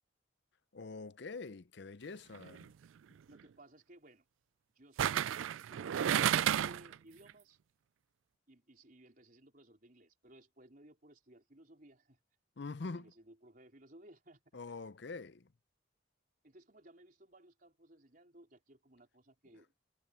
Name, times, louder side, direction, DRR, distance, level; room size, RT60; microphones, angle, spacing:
voice 1, 0.7-2.7 12.6-13.1 14.5-15.5, left 3 dB, 60° left, 0.6 m, -45 dB
sound 1, 2.4-2.6 5.0-6.9 7.3-7.4, right 10 dB, 80° right, 0.3 m, -31 dB
voice 2, 3.3-4.2 4.8-5.3 5.5-6.0 6.4-7.6 8.5-12.2 12.8-14.6 16.4-19.7, right 1 dB, 45° right, 4.5 m, -59 dB
head